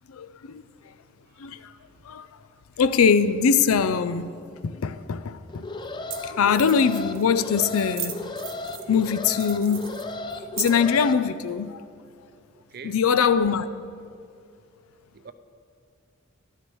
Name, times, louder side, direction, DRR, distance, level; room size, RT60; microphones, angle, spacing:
voice 1, 0.1-0.6 1.4-1.7 2.1-2.3 2.8-5.7 6.2-8.2 8.9-9.9 10.6-11.8 12.8-13.7, left 6 dB, 85° left, 0.4 m, -22 dB
voice 2, 1.3-1.9 12.5-13.0 15.1-15.3, right 5 dB, 45° right, 0.5 m, -45 dB
sound 1, 5.0-5.1 5.8-5.9 6.1-6.2 6.5-7.3 7.7-9.0 9.3-11.0, right 10 dB, 65° right, 1.0 m, -36 dB
Alarm, 5.5-11.1, left 2 dB, 20° left, 0.4 m, -35 dB
13.0 x 12.0 x 3.1 m
head